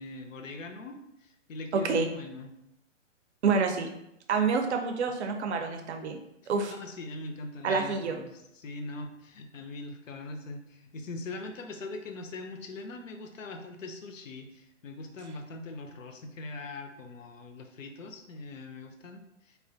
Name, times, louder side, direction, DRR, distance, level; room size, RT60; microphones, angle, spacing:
voice 1, 0.0-2.5 6.4-19.6, left 2 dB, 90° left, 6 dB, 0.5 m, -42 dB
voice 2, 1.7-2.1 3.4-3.9 4.3-6.2 6.5-6.7 7.6-8.2, right 5 dB, 60° right, 5 dB, 0.5 m, -27 dB
2.3 x 2.1 x 2.5 m, 0.82 s
hypercardioid pair, 135°, 38 cm